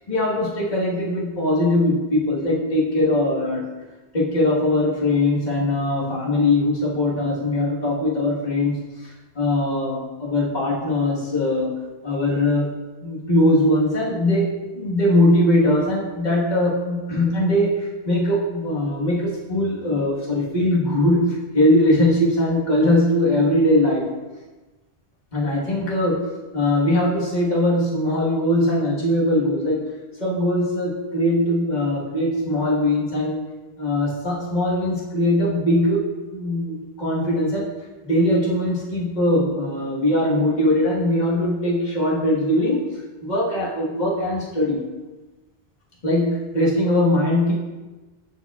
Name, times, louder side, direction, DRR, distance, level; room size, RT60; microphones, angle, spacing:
voice 1, 0.1-3.6 4.1-11.7 12.0-12.8 13.0-24.1 25.3-26.2 26.5-29.8 30.2-33.4 33.8-37.7 38.0-42.9 43.2-44.8 46.0-47.5, left 1 dB, 45° left, -6 dB, 1.6 m, -21 dB
11.0 x 4.8 x 2.4 m, 1.2 s
omnidirectional pair, 1.1 m